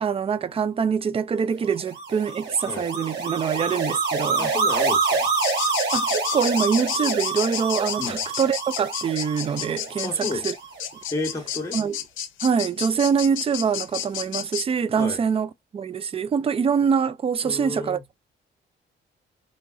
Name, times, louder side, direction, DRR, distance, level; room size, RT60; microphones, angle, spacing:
voice 1, 0.0-4.5 5.9-10.5 11.7-12.0 12.4-18.0, right 6 dB, 30° right, 0.4 m, -24 dB
sound 1, 1.7-11.0, right 4 dB, 60° right, 1.6 m, -27 dB
voice 2, 4.4-5.3 8.0-8.2 10.0-10.4 11.1-11.8 15.0-15.2 17.4-18.0, left 2 dB, 15° left, 1.0 m, -31 dB
sound 2, 5.4-14.7, left 11 dB, 80° left, 0.6 m, -31 dB
3.0 x 2.6 x 2.3 m
cardioid pair, 90°, 20 cm